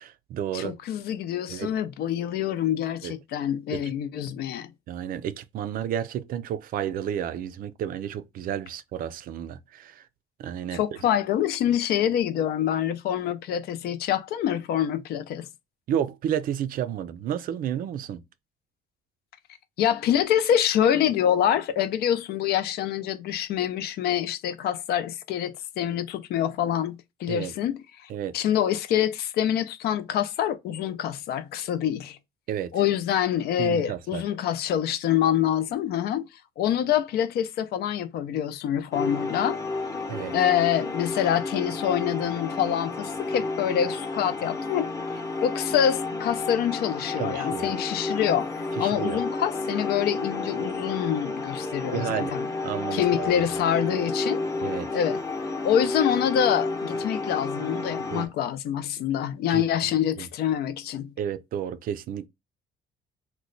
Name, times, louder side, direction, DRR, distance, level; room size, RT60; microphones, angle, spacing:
voice 1, 0.0-0.8 1.5-1.8 3.0-3.1 3.7-3.9 4.9-10.0 10.4-10.8 15.9-18.2 27.3-27.5 28.1-28.3 32.5-32.7 33.6-34.2 40.1-40.3 47.2-47.7 48.8-49.2 51.9-52.3 52.6-53.3 54.6-54.9 58.1-58.3 59.5-59.6 60.2-60.3 61.2-62.3, right 10 dB, 55° right, 0.4 m, -31 dB
voice 2, 0.5-4.7 10.7-15.5 19.8-27.8 28.3-32.2 32.7-36.3 36.6-39.6 40.3-44.9 45.4-52.5 52.9-54.4 54.9-55.2 55.6-61.1, left 10 dB, 70° left, 0.5 m, -26 dB
sound 1, 38.9-58.3, left 3 dB, 20° left, 0.7 m, -31 dB
3.0 x 2.2 x 3.8 m
cardioid pair, 110°, 17 cm